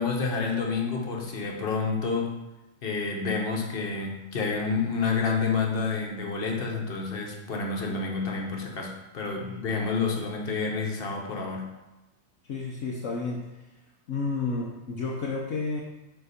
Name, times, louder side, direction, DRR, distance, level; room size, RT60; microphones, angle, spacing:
voice 1, 0.0-2.4 2.8-11.7, left 4 dB, 45° left, 0 dB, 1.4 m, -29 dB
voice 2, 12.5-13.4 14.1-15.8, left 3 dB, 60° left, -3 dB, 1.1 m, -31 dB
6.8 x 4.3 x 5.1 m, 1.0 s
omnidirectional pair, 1.5 m